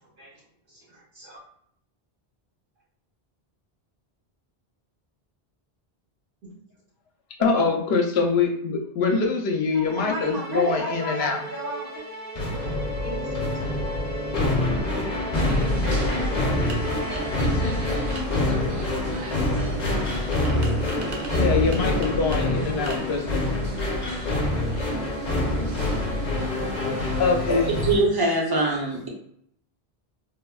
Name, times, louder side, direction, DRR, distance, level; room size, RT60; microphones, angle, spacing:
voice 1, 0.7-1.4 6.4-6.5 7.4-7.7 9.7-12.0 13.0-13.2 16.0-16.4, right 1 dB, 80° right, -7 dB, 1.5 m, -33 dB
voice 2, 7.4-11.4 21.3-23.5 24.7-24.8 25.5-26.0 26.5-26.7 27.2-27.8, left 4 dB, 80° left, 2 dB, 0.8 m, -25 dB
Musical instrument, 9.8-18.3, right 2 dB, 15° left, 0.3 m, -37 dB
sound 1, 12.4-28.0, left 1 dB, 50° left, 0.7 m, -26 dB
sound 2, 15.3-28.0, right 2 dB, 65° right, 0.8 m, -39 dB
voice 3, 27.5-29.1, right 1 dB, 30° right, -2 dB, 0.6 m, -23 dB
3.5 x 2.1 x 2.3 m, 0.69 s
omnidirectional pair, 1.0 m